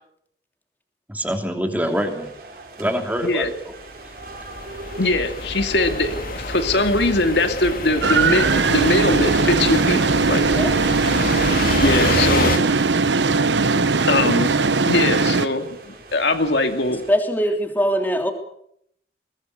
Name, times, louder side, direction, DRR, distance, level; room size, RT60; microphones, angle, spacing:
voice 1, 1.1-2.3 2.8-3.8, equal, 10° right, 4 dB, 2.9 m, -25 dB
sound 1, 1.8-17.1, right 3 dB, 50° right, 5.8 m, -41 dB
sound 2, 3.9-4.0 4.2-12.6, left 2 dB, 50° left, 2.6 m, -28 dB
voice 2, 5.0-10.5 11.8-12.6 14.1-14.6 14.8-17.0, left 2 dB, 75° left, 6 dB, 2.5 m, -21 dB
sound 3, 8.0-15.5, right 4 dB, 80° right, 1.1 m, -19 dB
voice 3, 17.1-18.3, equal, 10° left, 4 dB, 3.2 m, -21 dB
22.5 x 19.0 x 8.2 m, 0.71 s
head